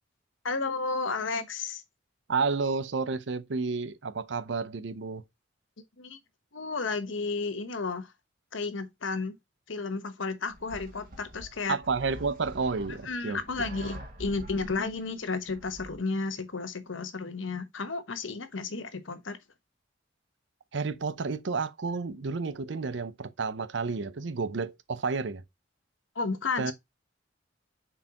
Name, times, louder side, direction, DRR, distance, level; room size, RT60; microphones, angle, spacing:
voice 1, 0.4-1.8 6.0-6.2 6.5-8.1 8.5-9.4 9.7-11.8 12.9-19.4 26.1-26.7, left 4 dB, 90° left, 1.1 m, -32 dB
voice 2, 2.3-5.2 11.7-13.4 20.7-25.4 26.6-26.7, right 4 dB, 70° right, 0.6 m, -31 dB
sound 1, 10.5-16.0, equal, 50° right, 2.1 m, -45 dB
7.1 x 4.6 x 2.9 m
head